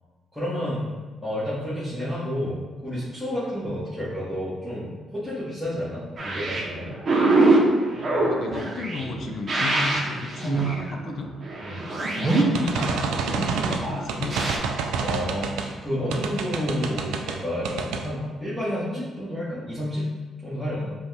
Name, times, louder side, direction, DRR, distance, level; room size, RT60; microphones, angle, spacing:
voice 1, 0.3-0.9 1.2-7.0 11.6-11.9 15.0-20.0 20.4-20.9, equal, 5° left, -11 dB, 1.2 m, -30 dB
sound 1, 6.2-14.6, right 2 dB, 45° right, 0.8 m, -24 dB
voice 2, 7.9-11.3 12.1-14.4, left 3 dB, 65° left, 3 dB, 0.4 m, -34 dB
sound 2, 12.5-15.7 16.1-17.4 17.6-18.1, right 5 dB, 90° right, 0.3 m, -28 dB
5.1 x 2.4 x 3.3 m, 1.4 s
cardioid pair, 90°, 0 cm